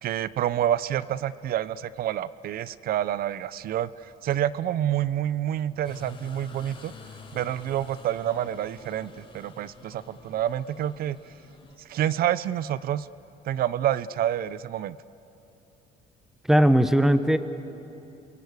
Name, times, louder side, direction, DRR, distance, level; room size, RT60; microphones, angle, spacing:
voice 1, 0.0-6.9 7.3-11.2 11.8-13.1 13.4-15.0, right 11 dB, 60° right, 18 dB, 0.6 m, -28 dB
sound 1, 5.8-11.8, left 4 dB, 30° left, 3.9 m, -48 dB
voice 2, 16.5-17.4, right 1 dB, ahead, 11 dB, 1.1 m, -18 dB
29.0 x 22.5 x 8.3 m, 3.0 s
cardioid pair, 110°, 17 cm